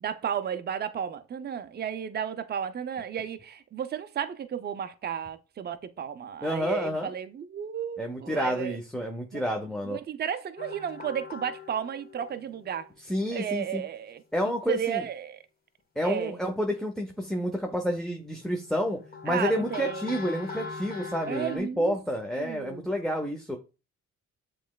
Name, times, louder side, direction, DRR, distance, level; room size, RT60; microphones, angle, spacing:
voice 1, 0.0-8.8 9.3-9.6 9.9-12.9 13.3-14.2 14.7-15.4 16.0-16.4 19.3-20.0 21.3-22.0 22.4-22.9, right 8 dB, 35° right, 0.5 m, -33 dB
voice 2, 6.4-7.1 8.0-10.0 13.1-13.8 14.3-15.0 16.0-23.6, equal, ahead, 0.7 m, -29 dB
sound 1, 10.6-12.9 13.3-13.7 15.9-16.0 17.1-17.7 18.4-21.6, left 4 dB, 30° left, 1.4 m, -41 dB
7.2 x 3.1 x 2.3 m
cardioid pair, 90°, 30 cm